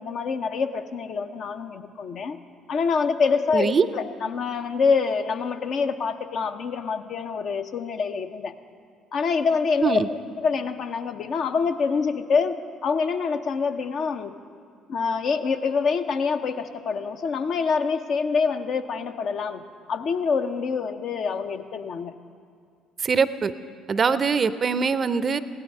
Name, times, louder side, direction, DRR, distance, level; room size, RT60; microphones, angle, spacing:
voice 1, 0.0-2.4 2.7-8.5 9.1-14.3 14.9-19.6 19.9-22.1, left 5 dB, 55° left, 7 dB, 0.7 m, -26 dB
voice 2, 3.5-3.9 9.8-10.1 23.0-23.5 23.9-25.4, right 5 dB, 40° right, 15 dB, 0.5 m, -22 dB
16.0 x 12.0 x 5.4 m, 2.2 s
hypercardioid pair, 50°, 0 cm